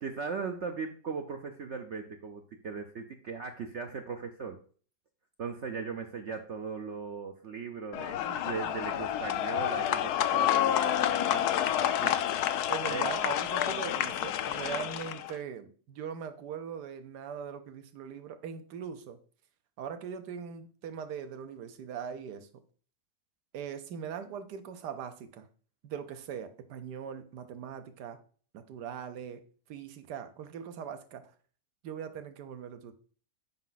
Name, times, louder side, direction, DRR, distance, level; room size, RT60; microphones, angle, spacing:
voice 1, 0.0-4.6 5.4-12.2 12.9-13.1, right 5 dB, 60° right, 4 dB, 0.8 m, -38 dB
sound 1, 7.9-15.3, left 11 dB, 75° left, 1.0 m, -29 dB
voice 2, 12.7-19.2 19.8-22.5 23.5-25.5 25.8-28.2 28.5-29.4 29.7-31.3 31.8-32.9, right 7 dB, 75° right, 10 dB, 1.4 m, -40 dB
7.4 x 5.5 x 3.9 m, 0.43 s
omnidirectional pair, 1.8 m